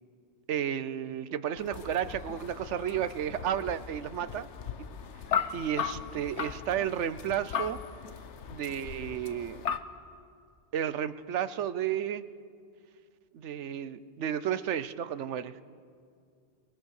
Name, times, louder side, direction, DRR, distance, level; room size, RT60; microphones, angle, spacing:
voice 1, 0.5-4.5 4.8-4.9 5.5-7.8 8.5-9.6 10.7-12.2 13.3-15.5, right 9 dB, 90° right, 14 dB, 1.1 m, -32 dB
sound 1, 1.6-9.8, left 7 dB, 80° left, 1.2 m, -37 dB
26.5 x 23.5 x 6.5 m, 2.3 s
omnidirectional pair, 1.2 m